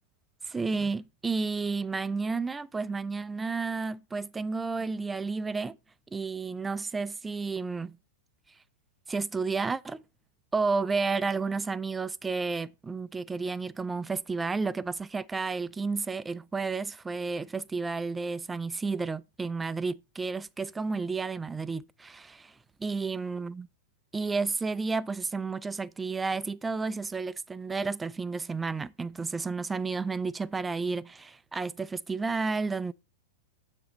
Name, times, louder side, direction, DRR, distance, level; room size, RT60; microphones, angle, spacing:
voice 1, 0.4-5.8 6.1-8.0 9.1-10.0 10.5-22.5 22.8-23.7 24.1-32.9, right 4 dB, 10° right, 0.3 m, -31 dB
7.4 x 6.9 x 3.1 m
figure-of-eight pair, 95°, 0 cm